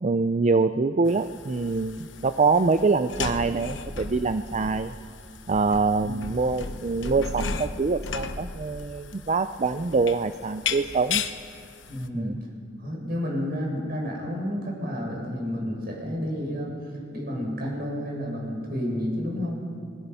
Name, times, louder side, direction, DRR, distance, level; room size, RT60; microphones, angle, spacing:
voice 1, 0.0-4.9 5.5-11.2 12.1-12.4, right 4 dB, 35° right, 11 dB, 0.5 m, -25 dB
sound 1, 1.1-12.1, left 5 dB, 70° left, 1.1 m, -35 dB
voice 2, 11.9-12.5 12.8-16.7 17.1-19.6, equal, 55° right, -1 dB, 6.7 m, -30 dB
28.0 x 21.5 x 5.6 m, 2.4 s
head